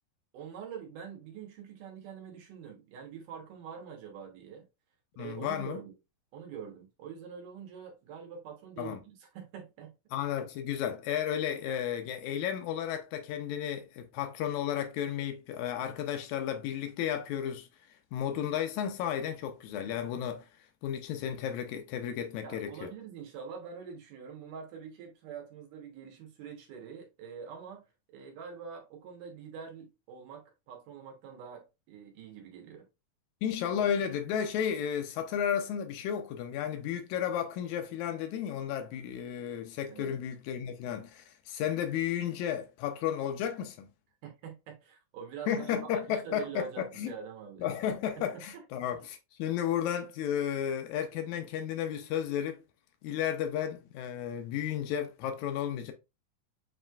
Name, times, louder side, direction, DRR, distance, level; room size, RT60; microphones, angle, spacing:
voice 1, 0.3-4.7 5.2-5.9 6.3-9.9 22.4-27.9 28.1-32.9 39.9-40.1 44.2-47.7 48.2-48.6, right 7 dB, 70° right, 2.6 m, -45 dB
voice 2, 5.2-5.8 8.8-9.0 10.1-20.5 20.8-22.9 33.4-43.9 45.5-47.1 47.6-52.6 53.0-55.9, left 9 dB, 85° left, 1.6 m, -33 dB
7.2 x 3.1 x 2.3 m
omnidirectional pair, 4.0 m